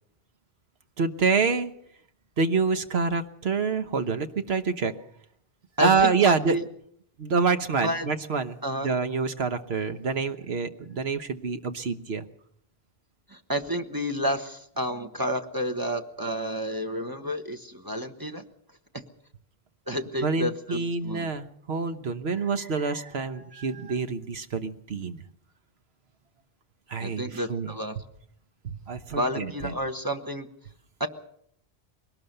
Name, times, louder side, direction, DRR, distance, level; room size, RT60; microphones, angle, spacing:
voice 1, 1.0-1.7 2.4-4.9 5.8-6.6 7.2-12.2 20.2-25.2 26.9-27.7 28.6-29.7, right 5 dB, 80° right, 10 dB, 1.4 m, -27 dB
voice 2, 5.8-6.6 7.8-8.1 8.6-8.9 13.3-18.4 19.9-21.3 27.0-28.0 29.2-30.5 31.0-31.1, equal, 20° right, 6 dB, 1.2 m, -30 dB
21.5 x 18.5 x 6.7 m, 0.69 s
omnidirectional pair, 1.0 m